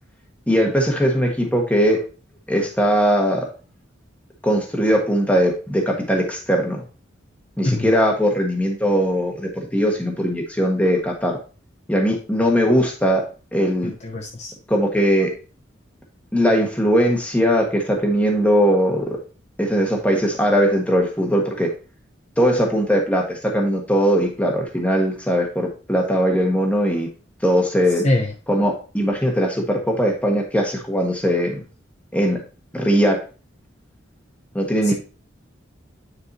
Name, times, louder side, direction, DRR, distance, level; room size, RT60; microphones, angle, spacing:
voice 1, 0.5-2.1 2.5-3.5 4.4-6.8 7.6-11.4 11.9-13.9 14.7-15.3 16.3-19.2 19.6-21.7 22.4-27.1 27.4-28.1 28.5-31.6 32.1-32.4 32.7-33.2 34.5-34.9, equal, 5° left, 1 dB, 1.3 m, -20 dB
voice 2, 13.8-14.5 28.0-28.3 34.8-34.9, left 1 dB, 35° left, 1 dB, 0.7 m, -23 dB
9.7 x 4.7 x 2.7 m, 0.35 s
head